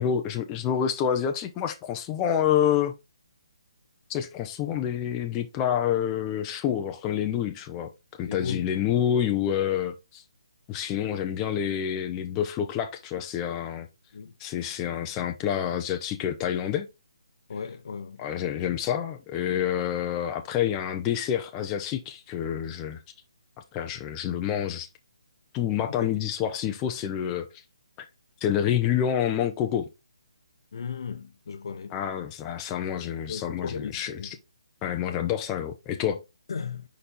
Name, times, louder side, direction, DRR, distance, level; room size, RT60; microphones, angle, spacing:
voice 1, 0.0-3.0 4.1-10.2 10.7-13.9 14.4-16.9 18.2-23.0 23.7-24.9 25.5-27.5 28.0-28.1 28.4-29.9 31.9-34.4 34.8-36.2, left 9 dB, 15° left, 0.5 m, -28 dB
voice 2, 8.2-8.7 14.1-14.3 17.5-18.2 30.7-32.0 33.3-34.3 36.5-36.8, left 6 dB, 55° left, 0.8 m, -36 dB
5.2 x 4.3 x 4.2 m
hypercardioid pair, 160°, 3 cm